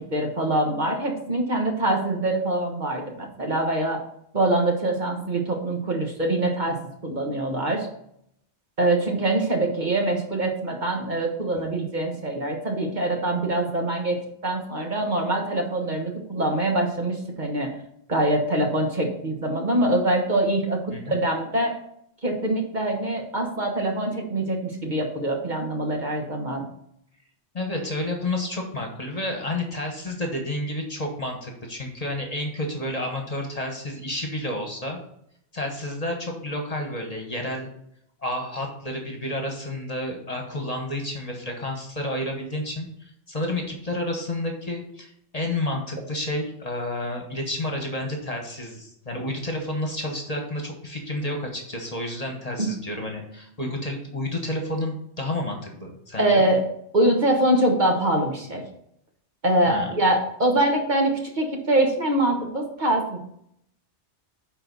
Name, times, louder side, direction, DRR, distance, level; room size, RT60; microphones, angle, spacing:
voice 1, 0.0-4.0 4.3-7.9 8.8-17.7 18.1-21.7 22.2-26.7 52.6-52.7 56.2-56.6 56.9-58.6 59.4-63.3, right 1 dB, 45° right, 1 dB, 1.4 m, -24 dB
voice 2, 27.5-35.0 35.5-37.7 38.2-56.5 59.7-59.9, left 1 dB, 35° left, 2 dB, 1.4 m, -30 dB
9.8 x 4.2 x 4.1 m, 0.71 s
omnidirectional pair, 1.2 m